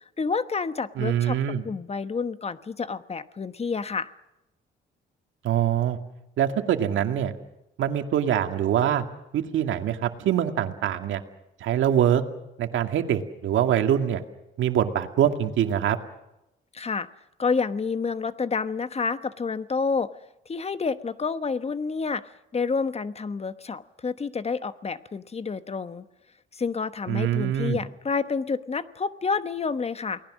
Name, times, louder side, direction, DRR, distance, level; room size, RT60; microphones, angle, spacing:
voice 1, 0.2-1.4 1.6-4.1 16.7-17.1 17.4-20.1 20.5-26.0 26.5-30.2, left 5 dB, 30° left, 13 dB, 1.1 m, -29 dB
voice 2, 1.0-1.6 5.4-6.0 6.4-7.3 7.8-9.0 9.3-11.2 11.6-12.2 12.6-14.2 14.6-16.0 27.1-27.8, right 10 dB, 75° right, 6 dB, 2.2 m, -24 dB
29.0 x 19.0 x 6.4 m, 0.92 s
cardioid pair, 90°, 20 cm